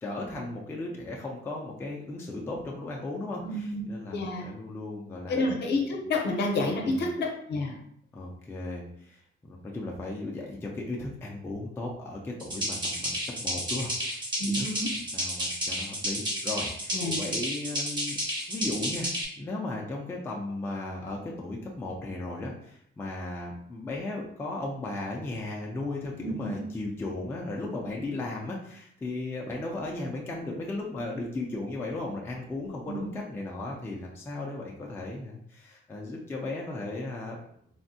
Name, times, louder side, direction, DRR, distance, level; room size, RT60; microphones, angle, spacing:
voice 1, 0.0-5.4 6.8-7.1 8.1-14.7 14.9-18.2 18.5-19.1 19.4-37.4, left 2 dB, 10° left, -2 dB, 0.3 m, -36 dB
voice 2, 3.4-3.8 4.1-4.5 5.3-7.7 14.4-14.9 16.9-17.2 26.2-26.6 32.9-33.1, left 2 dB, 55° left, 1 dB, 0.6 m, -29 dB
sound 1, 12.4-19.2, equal, 20° right, 0.6 m, -31 dB
3.4 x 2.0 x 2.6 m, 0.68 s
cardioid pair, 165°, 20 cm